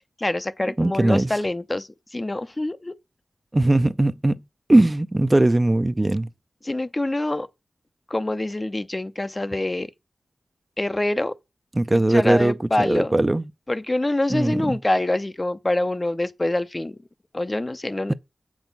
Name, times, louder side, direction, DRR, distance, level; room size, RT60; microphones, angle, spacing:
voice 1, 0.2-3.0 6.6-7.5 8.1-9.9 10.8-11.4 11.9-13.1 13.7-17.0 17.3-18.1, left 1 dB, 25° left, 0.6 m, -25 dB
voice 2, 0.8-1.3 3.5-4.4 4.7-6.3 11.7-13.4 14.3-14.8 18.1-18.2, right 2 dB, 25° right, 0.5 m, -19 dB
7.9 x 6.2 x 5.3 m
wide cardioid pair, 65°, 0 cm